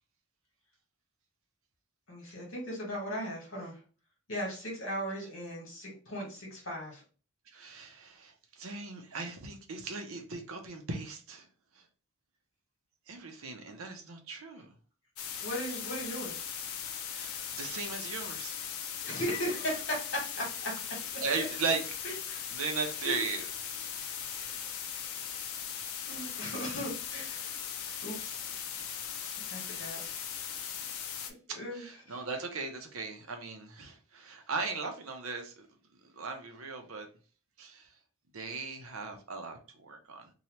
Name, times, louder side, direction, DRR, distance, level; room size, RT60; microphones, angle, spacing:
voice 1, 2.1-3.8 4.3-7.0 15.4-16.4 19.0-21.2 22.0-22.5 23.0-23.2 24.1-24.5 26.1-27.6 28.0-28.4 28.8-29.0 29.5-30.0 31.5-32.2, equal, 60° left, 1.5 m, -38 dB
voice 2, 7.5-11.5 11.7-11.9 13.1-14.7 17.1-18.6 21.2-21.8 22.5-23.5 23.8-23.9 31.5-35.7 36.0-37.1 37.6-37.9 38.3-40.3, right 4 dB, 70° right, 0.6 m, -37 dB
sound 1, 15.2-31.3, left 8 dB, 80° left, 0.5 m, -39 dB
2.8 x 2.3 x 3.0 m
head